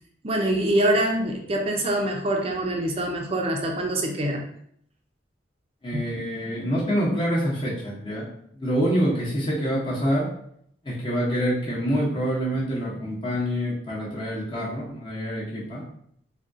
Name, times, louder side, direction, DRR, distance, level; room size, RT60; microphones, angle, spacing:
voice 1, 0.2-4.4 5.9-6.0, right 1 dB, 30° right, 1 dB, 0.5 m, -24 dB
voice 2, 5.8-8.3 8.5-10.3 10.8-15.9, equal, 25° left, -6 dB, 0.7 m, -26 dB
3.6 x 2.2 x 2.5 m, 0.68 s
head